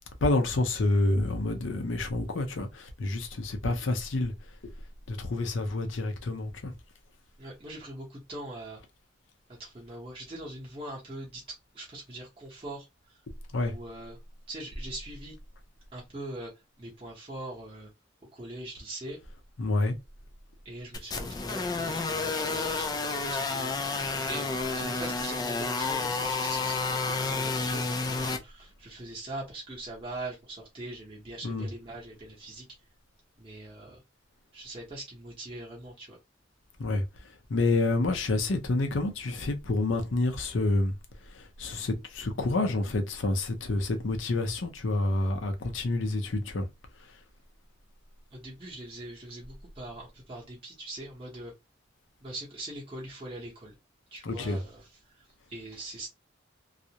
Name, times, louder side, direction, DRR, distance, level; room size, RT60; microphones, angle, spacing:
voice 1, 0.2-4.3 5.1-6.7 13.5-13.7 19.6-19.9 31.4-31.7 36.8-37.0 37.5-40.9 41.3-46.7 54.2-54.6, left 2 dB, 75° left, 0.6 m, -28 dB
voice 2, 7.4-8.8 9.6-13.2 13.6-14.2 14.5-15.4 15.9-16.5 16.8-17.9 18.3-19.2 20.6-24.5 24.7-27.8 28.3-32.7 33.4-34.0 34.5-36.2 48.3-51.5 52.2-53.7 54.1-56.1, right 1 dB, 25° right, 0.8 m, -42 dB
sound 1, 20.9-28.4, left 3 dB, 20° left, 0.3 m, -30 dB
2.4 x 2.0 x 2.7 m
head